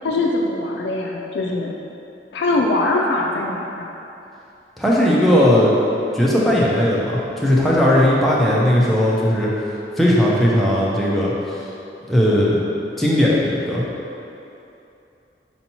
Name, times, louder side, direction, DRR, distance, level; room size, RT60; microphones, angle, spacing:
voice 1, 0.0-1.7 2.3-3.9 8.4-8.8, left 2 dB, 75° left, -1 dB, 0.3 m, -22 dB
voice 2, 4.8-5.8 6.1-9.5 10.0-11.3 12.1-13.8, equal, ahead, -7 dB, 0.4 m, -17 dB
4.4 x 2.8 x 2.8 m, 2.8 s
head